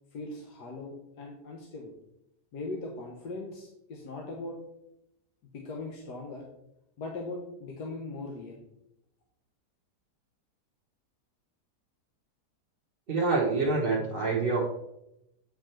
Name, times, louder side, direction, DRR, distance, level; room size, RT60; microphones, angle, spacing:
voice 1, 0.1-1.9 2.5-4.6 5.5-6.4 7.0-8.6, left 2 dB, 70° left, 0 dB, 1.6 m, -39 dB
voice 2, 13.1-14.6, right 3 dB, 40° right, -3 dB, 1.0 m, -26 dB
8.4 x 4.8 x 4.4 m, 0.84 s
omnidirectional pair, 1.8 m